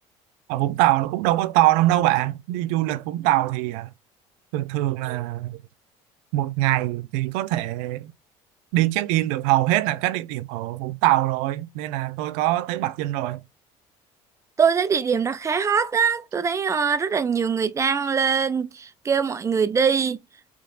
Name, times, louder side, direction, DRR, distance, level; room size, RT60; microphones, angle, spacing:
voice 1, 0.5-3.9 4.5-5.6 6.3-8.1 8.7-13.4, right 16 dB, 90° right, 0.5 m, -23 dB
voice 2, 14.6-20.2, right 6 dB, 25° right, 0.5 m, -22 dB
3.7 x 3.2 x 3.8 m
cardioid pair, 120°, 13 cm